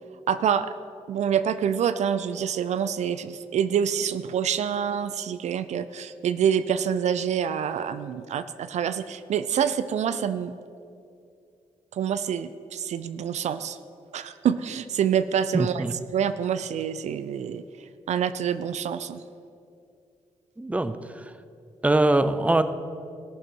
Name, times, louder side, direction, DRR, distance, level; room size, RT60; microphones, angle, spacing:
voice 1, 0.3-0.7 1.1-10.5 11.9-13.8 14.1-15.8 16.1-17.6 18.1-19.2, right 8 dB, 70° right, 13 dB, 0.4 m, -26 dB
voice 2, 15.5-15.9 20.6-21.3 21.8-22.6, right 2 dB, 10° right, 11 dB, 0.6 m, -23 dB
16.5 x 6.2 x 4.6 m, 2.5 s
cardioid pair, 60°, 12 cm